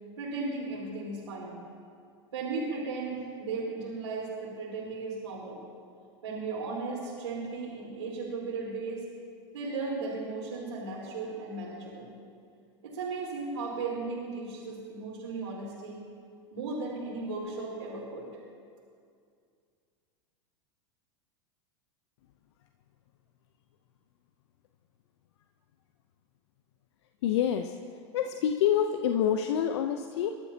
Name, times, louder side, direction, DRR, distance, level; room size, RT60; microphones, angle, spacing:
voice 1, 0.2-1.6 2.3-5.6 6.2-9.1 9.5-12.1 12.8-16.0 16.5-18.3, right 3 dB, 80° right, -7 dB, 4.0 m, -36 dB
voice 2, 27.2-27.8 28.1-30.3, left 9 dB, 65° left, 6 dB, 0.7 m, -27 dB
28.5 x 12.5 x 2.9 m, 2.3 s
hypercardioid pair, 95°, 15 cm